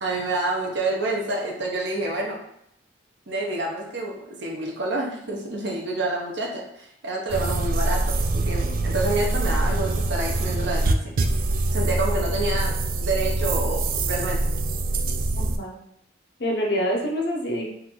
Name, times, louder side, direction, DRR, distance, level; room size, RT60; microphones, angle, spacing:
voice 1, 0.0-2.4 3.3-11.2 11.7-14.4, right 2 dB, 75° right, -1 dB, 0.9 m, -28 dB
sound 1, 7.3-15.6, right 2 dB, 50° right, 0.3 m, -24 dB
voice 2, 15.4-15.8 16.4-17.7, equal, 65° left, -1 dB, 0.8 m, -26 dB
3.9 x 2.5 x 4.4 m, 0.74 s
head